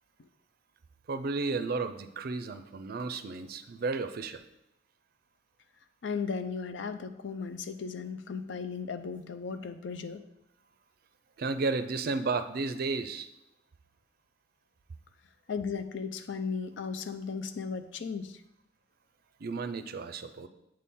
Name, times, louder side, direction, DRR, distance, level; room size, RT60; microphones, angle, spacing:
voice 1, 1.1-4.4 11.4-13.3 19.4-20.5, right 3 dB, 55° right, 10 dB, 0.4 m, -33 dB
voice 2, 6.0-10.2 15.5-18.4, left 5 dB, 80° left, 10 dB, 0.5 m, -36 dB
7.5 x 4.2 x 3.6 m, 0.85 s
head